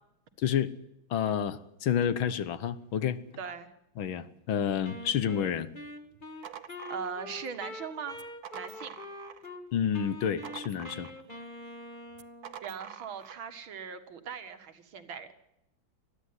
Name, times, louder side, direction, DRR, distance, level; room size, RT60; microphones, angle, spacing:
voice 1, 0.4-0.7 1.1-3.2 4.0-5.7 9.7-11.1, left 8 dB, 80° left, 14 dB, 1.9 m, -29 dB
voice 2, 3.4-3.7 6.9-8.2 8.5-9.0 12.6-15.3, right 6 dB, 80° right, 9 dB, 2.4 m, -40 dB
Wind instrument woodwind instrument, 4.8-9.6 9.9-12.6, left 1 dB, 25° left, 1.9 m, -44 dB
sound 1, 6.1-7.6 8.1-9.6 9.9-11.4 12.1-13.5, right 8 dB, 60° right, 1.3 m, -47 dB
20.0 x 14.0 x 9.7 m, 0.86 s
omnidirectional pair, 2.2 m